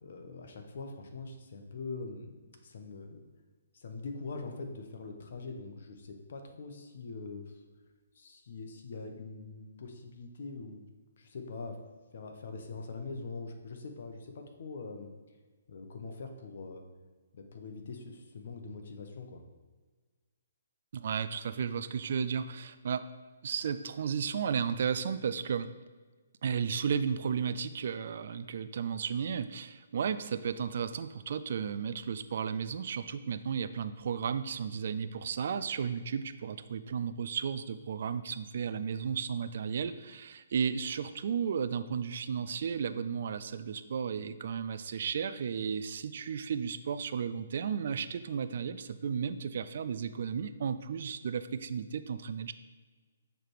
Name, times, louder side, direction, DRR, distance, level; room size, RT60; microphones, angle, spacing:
voice 1, 0.0-2.4 2.6-3.2 3.7-7.5 8.1-10.8 11.2-11.8 12.1-15.1 15.7-16.8 17.3-19.4, left 3 dB, 60° left, 5 dB, 0.9 m, -43 dB
voice 2, 20.9-23.0 23.4-25.7 26.4-52.5, right 7 dB, 55° right, 11 dB, 0.4 m, -34 dB
6.4 x 3.3 x 4.6 m, 1.3 s
figure-of-eight pair, 135°, 0 cm